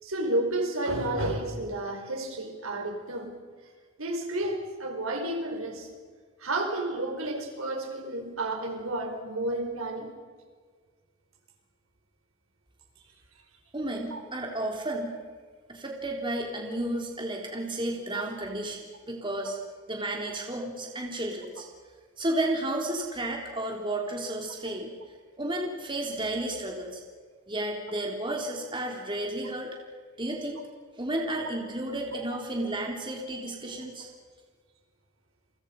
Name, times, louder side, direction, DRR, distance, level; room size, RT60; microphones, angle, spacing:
voice 1, 0.0-3.3 4.0-5.9 6.4-10.1 14.1-14.2, right 1 dB, 80° right, 3 dB, 5.1 m, -31 dB
voice 2, 13.7-15.1 15.7-18.8 19.1-19.6 19.9-21.7 22.2-24.9 25.4-27.0 27.5-29.7 30.2-30.6 31.0-34.1, right 1 dB, 25° right, 0 dB, 3.6 m, -32 dB
30.0 x 24.5 x 5.5 m, 1.5 s
head